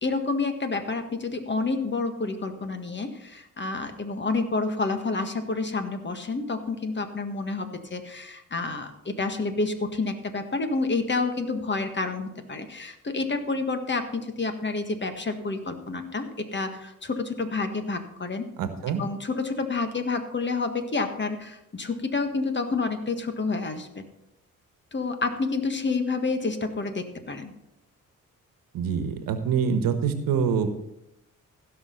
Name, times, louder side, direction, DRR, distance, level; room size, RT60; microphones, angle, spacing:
voice 1, 0.0-18.4 19.0-24.0 24.9-27.5, left 3 dB, 35° left, 8 dB, 1.6 m, -29 dB
voice 2, 18.6-19.0 28.7-30.7, right 6 dB, 90° right, 9 dB, 1.3 m, -25 dB
16.0 x 5.8 x 5.7 m, 0.86 s
cardioid pair, 80°, 33 cm